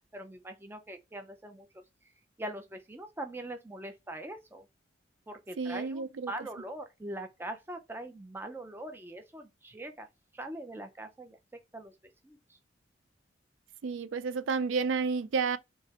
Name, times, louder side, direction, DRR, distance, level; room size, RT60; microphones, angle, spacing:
voice 1, 0.0-1.7 2.4-4.7 5.3-10.1 10.3-11.4 11.7-11.9 12.2-12.4, right 1 dB, 10° right, 0.5 m, -42 dB
voice 2, 5.6-6.3 13.8-15.6, right 5 dB, 90° right, 0.4 m, -31 dB
3.2 x 2.8 x 2.9 m
head